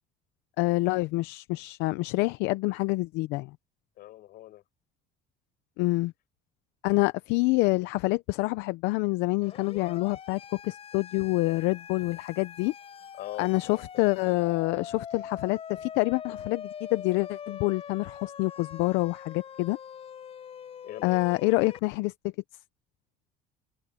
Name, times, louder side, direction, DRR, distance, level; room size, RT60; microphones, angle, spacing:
voice 1, 0.6-3.6 5.8-6.1 6.8-12.7 13.4-19.8 21.0-22.1, left 22 dB, 80° left, 0.7 m, -27 dB
voice 2, 4.0-4.6 13.2-14.4 20.8-21.6, left 15 dB, 60° left, 6.3 m, -43 dB
Siren, 9.4-21.8, left 8 dB, 35° left, 6.2 m, -43 dB
cardioid pair, 145°, 18 cm